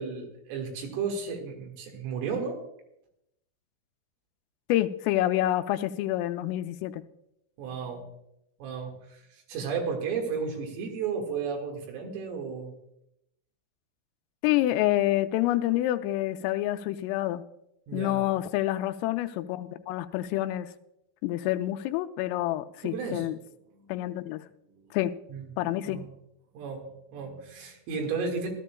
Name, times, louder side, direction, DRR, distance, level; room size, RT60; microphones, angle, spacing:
voice 1, 0.0-2.6 7.6-8.1 8.6-12.7 17.9-18.2 22.8-23.3 23.8-24.0 25.3-25.5 25.8-26.1 26.5-28.5, right 5 dB, 85° right, 2 dB, 4.4 m, -33 dB
voice 2, 4.7-7.0 14.4-17.4 17.9-20.7 21.2-23.4 23.9-24.4 24.9-25.1 25.6-26.0, left 14 dB, 90° left, 9 dB, 3.2 m, -27 dB
17.5 x 13.0 x 2.3 m, 0.82 s
omnidirectional pair, 5.7 m